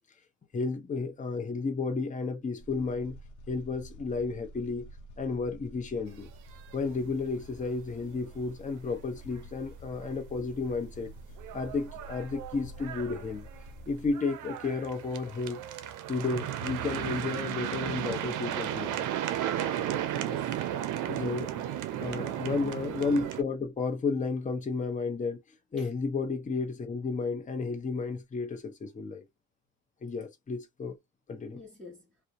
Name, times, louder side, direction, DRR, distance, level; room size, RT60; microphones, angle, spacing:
voice 1, 0.5-3.2 3.5-4.9 5.2-6.3 6.7-11.1 11.5-13.5 13.9-15.6 16.1-19.1 21.1-21.5 22.0-25.4 25.7-29.2 30.0-31.0 31.3-31.6, left 4 dB, 25° left, 0.7 m, -32 dB
sound 1, 2.6-14.1, equal, 75° left, 0.8 m, -49 dB
sound 2, 6.3-6.9 7.2-7.3 7.6-7.8 8.2-8.3 10.0-10.2 10.7-10.8 11.2-23.4, right 11 dB, 85° right, 0.5 m, -34 dB
voice 2, 20.1-20.6 21.5-22.7 25.8-25.9 31.5-32.1, left 2 dB, 5° left, 1.2 m, -49 dB
2.5 x 2.1 x 2.3 m
cardioid pair, 90°, 30 cm